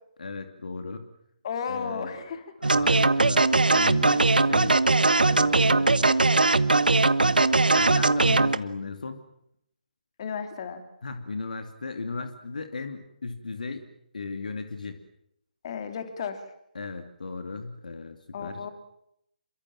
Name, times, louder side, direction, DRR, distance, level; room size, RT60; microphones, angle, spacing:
voice 1, 0.2-1.1 1.7-2.2 2.6-4.8 5.2-6.0 7.7-9.2 11.0-13.9 14.1-15.0 16.7-18.6, left 3 dB, 55° left, 7 dB, 2.6 m, -36 dB
voice 2, 1.4-2.7 10.2-10.8 15.6-16.4 18.3-18.7, left 6 dB, 35° left, 7 dB, 3.2 m, -34 dB
sound 1, 2.6-8.6, right 3 dB, 65° right, 1.3 m, -20 dB
28.5 x 23.5 x 7.6 m, 0.76 s
figure-of-eight pair, 145°, 5 cm